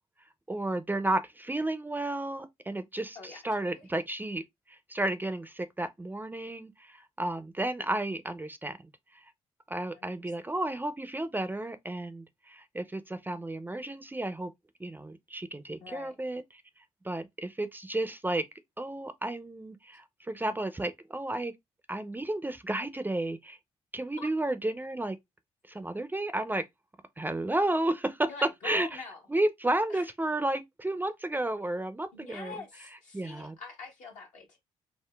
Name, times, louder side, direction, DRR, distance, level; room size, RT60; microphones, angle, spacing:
voice 1, 0.5-4.4 4.7-8.8 9.7-14.5 14.8-16.4 17.0-18.4 18.8-21.5 21.9-23.6 23.9-25.2 25.7-26.6 27.2-28.3 28.6-29.0 29.3-32.5 33.1-33.5, right 1 dB, 15° right, 0.4 m, -32 dB
voice 2, 3.1-3.8 9.9-10.1 15.8-16.1 24.2-24.3 28.3-29.2 29.9-30.1 32.1-34.6, left 4 dB, 70° left, 1.1 m, -45 dB
3.6 x 2.1 x 2.3 m
hypercardioid pair, 50°, 13 cm